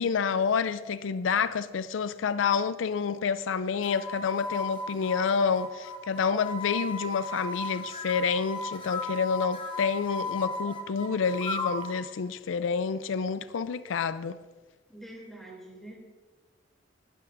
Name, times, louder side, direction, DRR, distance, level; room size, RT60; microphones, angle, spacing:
voice 1, 0.0-14.4, left 6 dB, 85° left, 0.4 m, -28 dB
sound 1, 3.8-12.0, left 2 dB, 25° left, 1.4 m, -36 dB
voice 2, 14.9-16.0, right 1 dB, ahead, 2.9 m, -45 dB
19.0 x 12.5 x 2.6 m
head